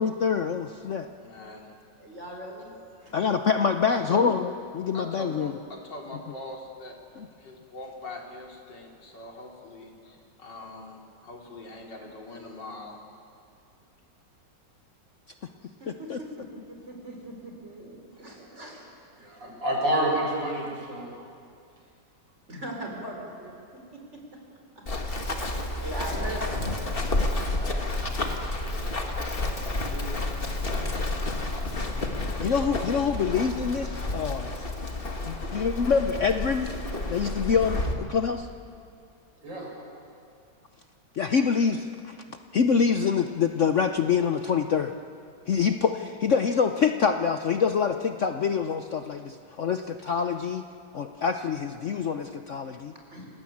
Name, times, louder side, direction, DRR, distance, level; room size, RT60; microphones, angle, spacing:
voice 1, 0.0-1.1 3.1-5.5 16.1-16.2 32.4-34.5 35.3-36.7 37.1-38.5 41.1-42.1 42.5-44.9 45.5-50.6 50.9-52.9, left 6 dB, 55° left, 7 dB, 0.9 m, -25 dB
voice 2, 1.2-1.7 3.9-4.4 4.9-7.0 7.4-13.0, left 1 dB, 75° left, 0 dB, 3.8 m, -42 dB
voice 3, 2.0-2.7 15.8-18.9 22.5-23.6 23.9-24.2 25.8-29.0 29.5-30.3 30.6-31.0 52.9-53.3, right 1 dB, 35° right, 0 dB, 5.4 m, -41 dB
voice 4, 19.2-21.1 39.4-39.7, right 1 dB, 85° right, -2 dB, 7.2 m, -28 dB
Run, 24.9-37.9, left 2 dB, 30° left, 2.0 m, -30 dB
28.5 x 18.5 x 8.6 m, 2.4 s
omnidirectional pair, 1.9 m